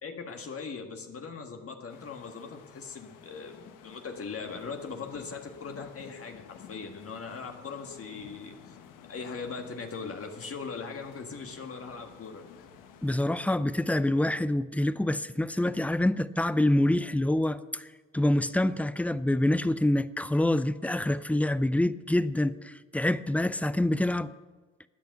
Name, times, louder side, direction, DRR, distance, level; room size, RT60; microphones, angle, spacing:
voice 1, 0.0-8.8 9.1-12.5, left 5 dB, 45° left, 1.7 m, -40 dB
sound 1, 1.9-13.1, left 8 dB, 85° left, 1.2 m, -52 dB
voice 2, 13.0-17.9 18.1-24.3, left 1 dB, 5° left, 0.5 m, -26 dB
13.5 x 9.3 x 7.8 m
cardioid pair, 85°, 31 cm